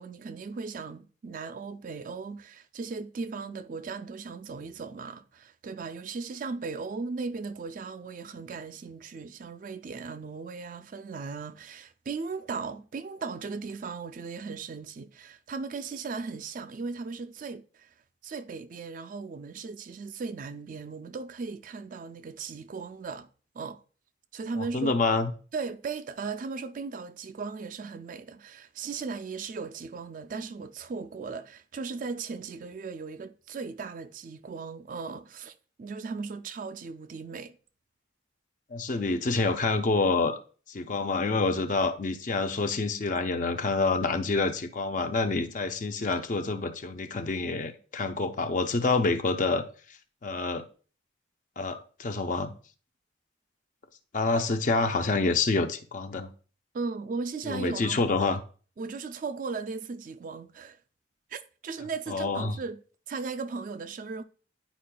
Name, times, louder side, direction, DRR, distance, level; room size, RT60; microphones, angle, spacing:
voice 1, 0.0-17.9 18.2-23.3 23.5-23.8 24.3-24.9 25.5-37.6 56.7-58.1 58.8-60.8 61.3-62.8 63.1-64.2, right 4 dB, 45° right, 0.3 m, -37 dB
voice 2, 24.6-25.3 38.7-40.4 40.7-49.6 50.2-50.6 51.6-52.5 54.1-56.3 57.5-58.4 62.1-62.6, left 3 dB, 40° left, 0.5 m, -27 dB
10.0 x 4.6 x 2.2 m
head